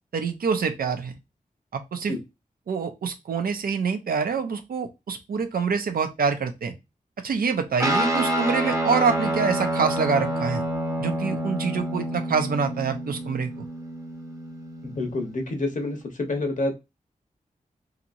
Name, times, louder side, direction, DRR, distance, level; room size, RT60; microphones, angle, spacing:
voice 1, 0.1-1.1 1.7-2.1 2.7-6.7 7.2-10.6 11.0-13.5, right 5 dB, 90° right, 6 dB, 0.6 m, -26 dB
Guitar, 7.8-15.4, right 1 dB, 20° right, 0.7 m, -28 dB
voice 2, 14.8-16.7, left 2 dB, 60° left, 3 dB, 0.9 m, -28 dB
2.9 x 2.8 x 2.5 m, 0.23 s
wide cardioid pair, 110°, 15 cm